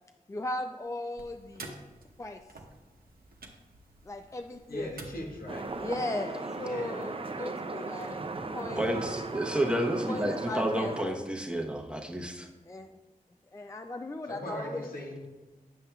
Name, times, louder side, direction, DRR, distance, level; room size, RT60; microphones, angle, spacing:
voice 1, 0.3-1.8 2.2-2.4 4.0-4.9 5.8-8.2 8.5-8.9 10.1-11.3 12.7-12.9 13.5-14.9, left 2 dB, 20° left, 6 dB, 0.3 m, -37 dB
sound 1, 1.2-6.0, right 2 dB, 85° right, 0.7 m, -50 dB
voice 2, 4.7-5.7 6.6-7.0 14.3-15.3, left 1 dB, 80° left, -2 dB, 1.3 m, -39 dB
sound 2, 5.5-11.0, right 3 dB, 40° right, 0.5 m, -37 dB
voice 3, 8.8-12.5, right 1 dB, 5° right, 1 dB, 0.9 m, -30 dB
8.2 x 7.0 x 2.3 m, 1.2 s
cardioid pair, 50°, 15 cm